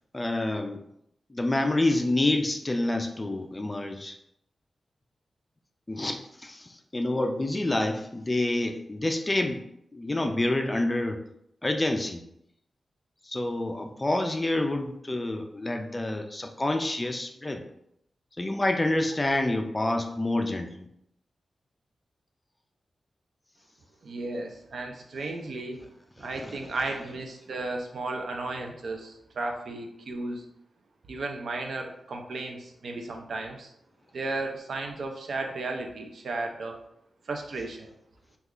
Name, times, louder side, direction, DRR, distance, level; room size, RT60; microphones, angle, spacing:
voice 1, 0.1-0.8 1.3-4.2 5.9-9.6 9.9-11.2 11.6-12.2 13.3-17.6 18.4-20.9 26.3-26.5, left 2 dB, 20° left, 5 dB, 0.3 m, -28 dB
voice 2, 24.0-25.9 26.2-30.4 31.1-33.7 34.1-36.8 37.3-37.9, right 2 dB, 70° right, 3 dB, 0.5 m, -34 dB
3.1 x 2.3 x 3.6 m, 0.76 s
wide cardioid pair, 125°, 0 cm